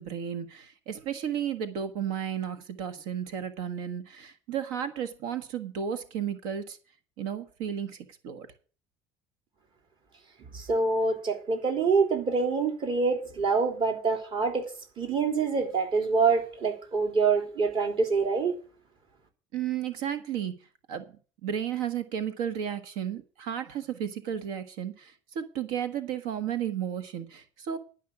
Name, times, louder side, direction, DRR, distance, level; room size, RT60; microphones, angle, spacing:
voice 1, 0.0-6.8 7.2-8.5 19.5-20.5 20.9-21.0 21.4-27.8, right 9 dB, 85° right, 1.5 m, -33 dB
voice 2, 10.5-14.7 15.0-18.5, right 4 dB, 40° right, 3.4 m, -26 dB
11.5 x 5.6 x 8.7 m
cardioid pair, 130°, 12 cm